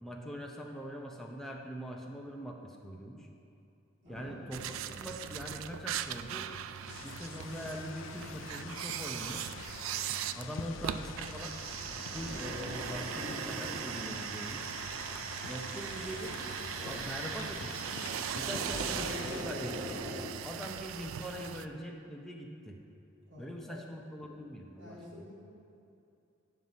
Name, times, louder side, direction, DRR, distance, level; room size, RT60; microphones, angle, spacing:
voice 1, 0.0-3.3 4.1-6.5 7.0-9.4 10.4-11.6 12.1-14.7 15.4-16.4 16.8-17.9 18.3-20.0 20.4-22.8 23.4-25.0, equal, ahead, 0 dB, 0.6 m, -42 dB
sound 1, 4.0-20.3, equal, 25° right, 2.0 m, -46 dB
voice 2, 4.0-4.4 23.2-23.8 24.8-25.3, left 1 dB, 65° right, -5 dB, 2.0 m, -51 dB
sound 2, 4.5-21.7, right 10 dB, 90° right, 0.3 m, -39 dB
sound 3, 6.9-19.4, left 8 dB, 70° left, 0.3 m, -46 dB
7.8 x 5.6 x 5.2 m, 2.7 s
head